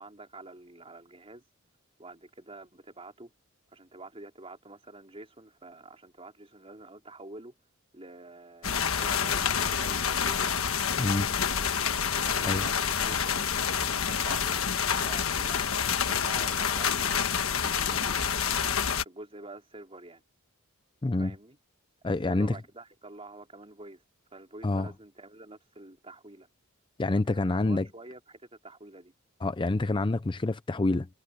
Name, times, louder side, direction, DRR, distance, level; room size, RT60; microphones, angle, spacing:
voice 1, 0.0-1.4 2.0-3.3 3.7-7.5 7.9-10.6 11.5-11.7 12.2-13.4 13.8-18.5 19.0-20.2 21.1-21.6 22.1-24.0 24.3-26.5 27.2-29.1, right 2 dB, 25° right, 4.0 m, -47 dB
sound 1, 8.6-19.0, left 7 dB, 70° left, 1.4 m, -28 dB
voice 2, 21.0-21.3 22.0-22.6 24.6-24.9 27.0-27.9 29.4-31.1, left 2 dB, 25° left, 0.5 m, -27 dB
head